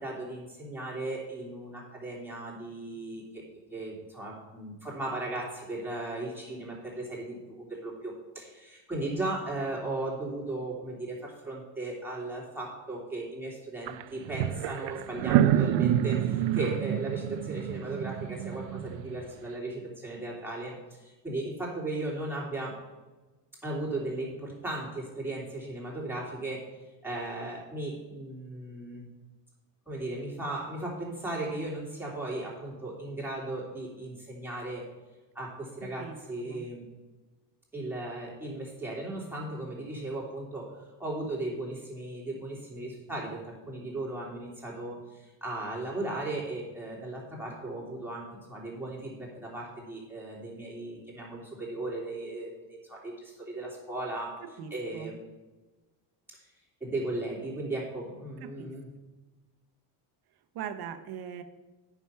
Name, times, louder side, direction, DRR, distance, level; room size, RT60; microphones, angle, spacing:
voice 1, 0.0-3.4 3.7-22.8 23.6-26.6 27.0-29.0 29.9-34.8 35.3-36.8 37.7-40.7 41.0-54.3 54.7-55.2 56.3-56.4 56.8-58.9, right 2 dB, 5° right, -5 dB, 3.2 m, -36 dB
sound 1, 13.9-14.0 14.3-19.2, right 11 dB, 85° right, 0.6 m, -27 dB
voice 2, 35.8-36.2 36.4-36.7 54.4-55.2 58.4-58.7 60.5-61.4, right 8 dB, 55° right, 8 dB, 1.0 m, -41 dB
9.1 x 6.0 x 5.6 m, 1.2 s
cardioid pair, 130°, 44 cm